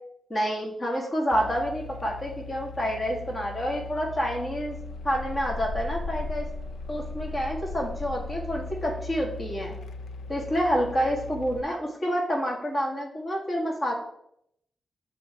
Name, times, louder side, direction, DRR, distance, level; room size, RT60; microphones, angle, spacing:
voice 1, 0.3-4.8 5.0-6.5 6.9-9.8 10.3-13.9, equal, 30° left, -1 dB, 1.7 m, -28 dB
sound 1, 1.3-11.6, left 3 dB, 90° left, 0.3 m, -37 dB
7.0 x 3.5 x 5.6 m, 0.74 s
wide cardioid pair, 145°, 0 cm